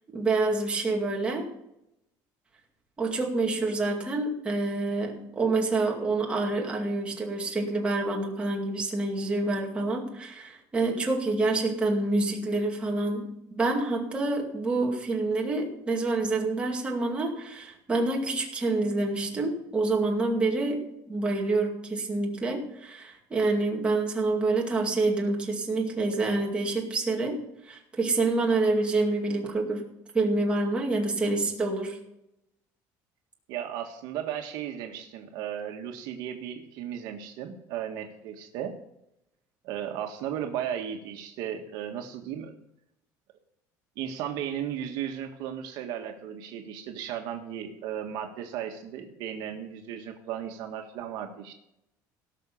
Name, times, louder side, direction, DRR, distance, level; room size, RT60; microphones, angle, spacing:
voice 1, 0.1-1.5 3.0-29.9 30.1-32.0, right 2 dB, 15° right, 0 dB, 2.3 m, -27 dB
voice 2, 33.5-38.7 39.6-42.5 44.0-51.5, right 9 dB, 65° right, 4 dB, 1.6 m, -35 dB
17.5 x 6.3 x 7.1 m, 0.82 s
cardioid pair, 170°, 8 cm